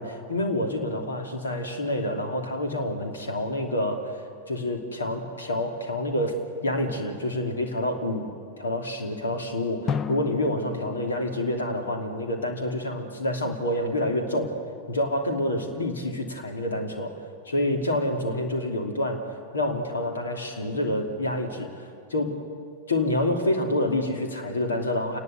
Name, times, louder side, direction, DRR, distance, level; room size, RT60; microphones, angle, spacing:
voice 1, 0.0-4.2 4.5-8.3 8.6-14.6 14.9-21.8 22.1-22.4 22.9-25.2, left 1 dB, 70° left, 3 dB, 3.0 m, -28 dB
Drum, 9.9-12.6, left 7 dB, 30° left, 0.9 m, -35 dB
28.5 x 20.0 x 8.0 m, 2.2 s
figure-of-eight pair, 90°, 0 cm